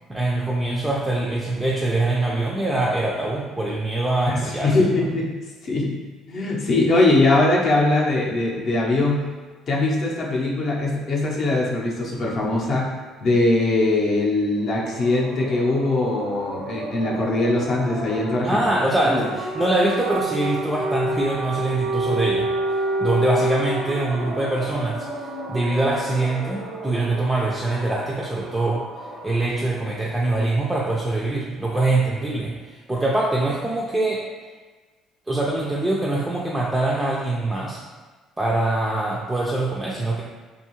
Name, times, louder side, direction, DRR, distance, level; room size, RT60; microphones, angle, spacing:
voice 1, 0.1-4.8 18.4-22.5 23.0-25.1 25.5-28.8 29.2-34.2 35.3-37.8 38.4-40.2, right 2 dB, 10° right, -5 dB, 0.3 m, -23 dB
voice 2, 4.3-5.3 5.6-6.0 6.3-9.3 9.7-12.9 13.2-18.6 19.1-19.3, left 2 dB, 50° left, -2 dB, 0.6 m, -21 dB
sound 1, 14.7-29.5, right 2 dB, 90° right, 0.5 m, -30 dB
2.7 x 2.3 x 2.9 m, 1.3 s
cardioid pair, 115°, 0 cm